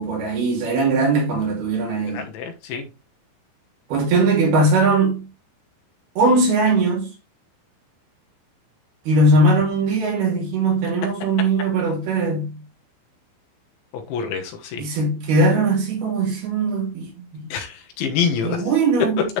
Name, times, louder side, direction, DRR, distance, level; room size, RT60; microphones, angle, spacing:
voice 1, 0.0-2.3 3.9-5.3 6.2-7.1 9.1-12.6 14.8-17.5 18.4-19.2, right 2 dB, 60° right, 4.1 m, -20 dB
voice 2, 2.1-2.9 13.9-14.9 17.5-18.6, left 6 dB, 75° left, 3.5 m, -26 dB
11.0 x 4.7 x 3.3 m
omnidirectional pair, 5.5 m